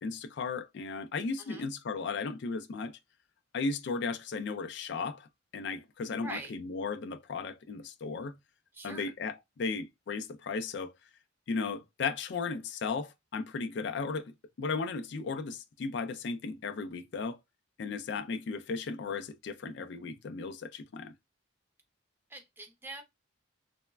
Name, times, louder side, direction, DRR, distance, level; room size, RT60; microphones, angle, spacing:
voice 1, 0.0-3.0 3.5-5.3 5.5-8.4 8.8-10.9 11.5-14.3 14.6-17.4 17.8-21.1, left 4 dB, 55° left, 0.3 m, -35 dB
voice 2, 8.7-9.1 22.3-23.0, right 2 dB, 10° right, 0.5 m, -43 dB
3.1 x 2.0 x 2.2 m
head